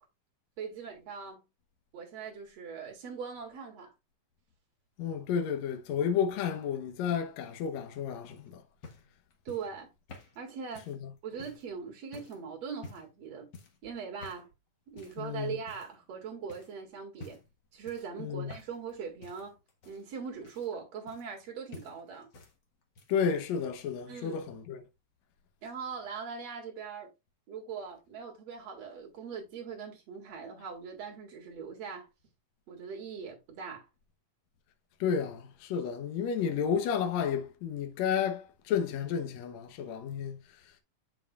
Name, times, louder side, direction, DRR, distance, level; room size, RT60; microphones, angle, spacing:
voice 1, 0.6-1.4 1.9-3.9 9.5-9.9 10.4-10.9 11.2-13.5 13.8-14.5 14.9-17.4 17.7-19.6 19.9-22.3 24.1-24.4 25.6-27.1 27.5-32.1 32.7-33.9, right 6 dB, 55° right, 2.9 m, -41 dB
voice 2, 5.0-8.6 10.9-11.1 15.2-15.6 18.2-18.6 23.1-24.8 35.0-40.7, left 7 dB, 65° left, 2.0 m, -32 dB
sound 1, 8.2-11.7 12.1-12.4 12.8-13.2 13.5-13.8 14.2-14.5 15.0-15.3 15.7-16.2 16.5-16.7 17.1-17.6 17.9-18.9 19.2-21.5 21.7-22.5 22.8-23.3 24.2-24.3, left 3 dB, 50° left, 1.4 m, -51 dB
7.7 x 7.1 x 2.4 m
omnidirectional pair, 3.7 m